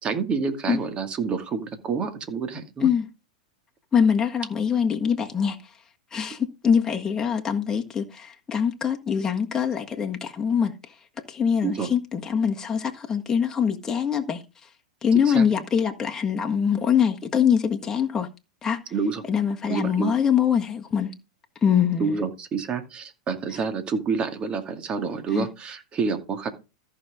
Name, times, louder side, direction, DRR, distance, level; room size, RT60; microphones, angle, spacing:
voice 1, 0.0-2.9 11.6-11.9 15.2-15.5 18.9-19.2 19.7-20.1 22.0-26.5, right 5 dB, 30° right, 2.2 m, -28 dB
voice 2, 3.9-5.6 6.1-6.4 6.6-10.7 11.3-14.4 15.0-18.3 18.6-18.8 19.3-21.1 21.6-22.2 25.3-25.5, left 7 dB, 15° left, 1.6 m, -23 dB
14.0 x 5.9 x 3.6 m
hypercardioid pair, 105°, 4 cm